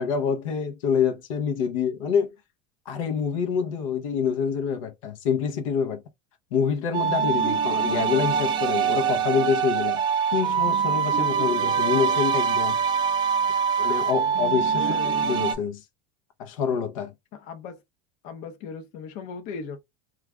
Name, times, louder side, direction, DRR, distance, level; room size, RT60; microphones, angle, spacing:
voice 1, 0.0-2.3 2.9-6.0 6.5-10.0 10.3-12.8 13.8-14.9 15.2-15.8 16.4-17.1, left 7 dB, 90° left, 0.7 m, -26 dB
sound 1, 6.9-15.5, right 7 dB, 25° right, 0.4 m, -24 dB
voice 2, 14.8-15.3 17.3-17.8 18.2-19.8, left 5 dB, 50° left, 0.6 m, -37 dB
2.4 x 2.4 x 3.2 m
supercardioid pair, 150°, 16 cm